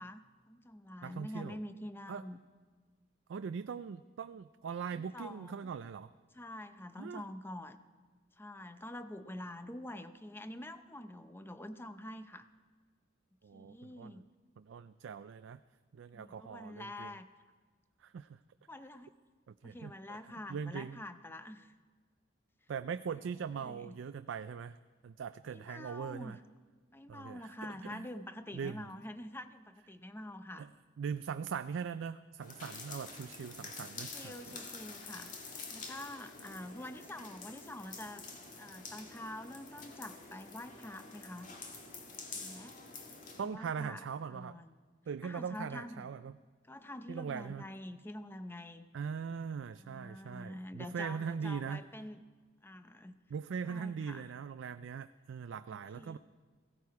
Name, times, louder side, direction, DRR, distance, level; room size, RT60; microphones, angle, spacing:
voice 1, 0.0-2.4 4.9-5.7 6.3-7.8 8.4-12.5 13.5-14.3 16.1-17.3 18.7-19.1 19.6-21.7 23.5-23.9 25.5-26.4 26.9-30.7 33.9-38.3 38.6-41.5 42.3-42.8 43.4-44.0 44.3-44.8 45.2-46.1 46.7-48.9 49.7-52.2 52.6-53.2 53.6-54.3 55.7-56.2, left 1 dB, 10° left, 10 dB, 0.6 m, -46 dB
voice 2, 1.0-1.6 2.1-2.2 3.3-6.1 7.0-7.2 13.4-14.2 14.6-15.6 15.9-17.1 18.0-18.4 19.5-20.2 20.5-21.0 22.7-24.8 25.0-26.4 27.1-28.1 28.5-28.9 30.6-30.7 31.0-34.6 43.4-44.6 45.1-46.4 47.1-47.7 48.9-51.8 53.3-56.2, right 6 dB, 65° right, 11 dB, 0.4 m, -41 dB
sound 1, 32.4-43.4, left 4 dB, 40° left, 1.8 m, -48 dB
17.0 x 16.0 x 4.7 m, 1.5 s
head